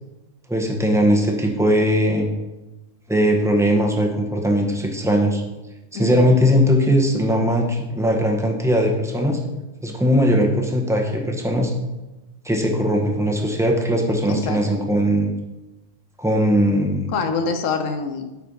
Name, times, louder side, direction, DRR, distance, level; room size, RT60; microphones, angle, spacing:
voice 1, 0.5-2.3 3.1-5.4 5.9-9.4 9.8-11.7 12.4-15.3 16.2-17.1, equal, 5° right, 2 dB, 0.9 m, -19 dB
voice 2, 5.9-6.3 14.3-14.6 17.1-18.2, left 4 dB, 80° left, 7 dB, 1.2 m, -25 dB
8.4 x 4.3 x 5.4 m, 1.0 s
omnidirectional pair, 1.3 m